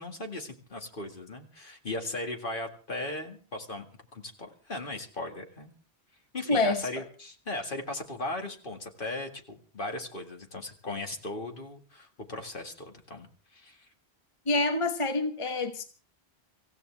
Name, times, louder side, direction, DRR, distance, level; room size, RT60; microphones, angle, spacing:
voice 1, 0.0-3.9 4.1-5.7 6.3-13.9, left 2 dB, 55° left, 2.1 m, -37 dB
voice 2, 6.5-6.9 14.5-15.8, left 2 dB, 30° left, 1.2 m, -27 dB
25.0 x 15.5 x 3.4 m
omnidirectional pair, 1.0 m